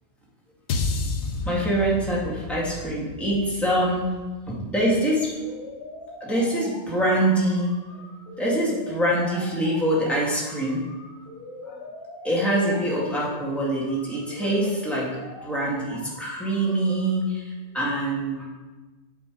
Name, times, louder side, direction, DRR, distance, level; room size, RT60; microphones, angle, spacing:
sound 1, 0.7-5.0, left 3 dB, 60° left, 0.9 m, -31 dB
voice 1, 1.4-4.1 4.5-5.3 6.2-7.7 8.4-10.8 11.7-11.8 12.2-15.1 15.4-18.4, right 1 dB, ahead, -6 dB, 2.0 m, -24 dB
sound 2, 5.3-17.3, left 1 dB, 35° right, 2.9 m, -43 dB
8.5 x 5.1 x 4.9 m, 1.2 s
omnidirectional pair, 1.2 m